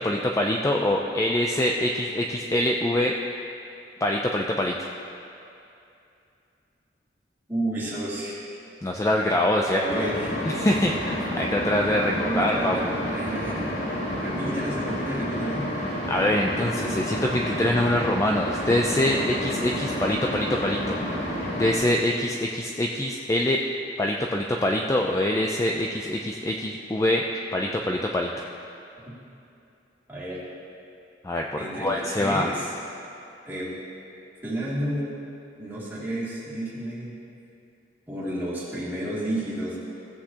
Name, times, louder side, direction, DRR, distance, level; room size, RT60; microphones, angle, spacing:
voice 1, 0.0-3.1 4.0-4.9 8.8-9.8 10.5-12.8 16.1-21.0 21.6-23.6 24.0-27.2 27.5-28.4 31.2-32.5, left 1 dB, 15° left, 0 dB, 0.4 m, -24 dB
voice 2, 7.5-8.4 9.7-10.4 12.1-13.6 14.1-15.7 30.1-30.4 31.6-32.7 33.5-33.7 34.4-35.2 35.6-37.2 38.1-39.8, right 1 dB, 10° right, -9 dB, 2.4 m, -31 dB
sound 1, 9.9-21.8, equal, 90° left, 2.3 m, -30 dB
16.0 x 8.2 x 2.9 m, 2.7 s
head